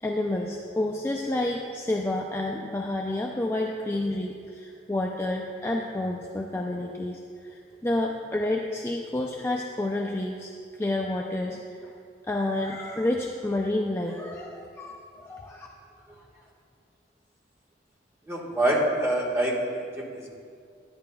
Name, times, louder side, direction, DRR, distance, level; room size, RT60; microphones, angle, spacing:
voice 1, 0.0-10.5 10.8-11.9 12.3-15.7, left 1 dB, 15° left, 0 dB, 0.3 m, -29 dB
voice 2, 18.3-19.8 20.1-20.3, right 1 dB, 15° right, -4 dB, 1.3 m, -25 dB
10.5 x 10.0 x 2.3 m, 2.3 s
head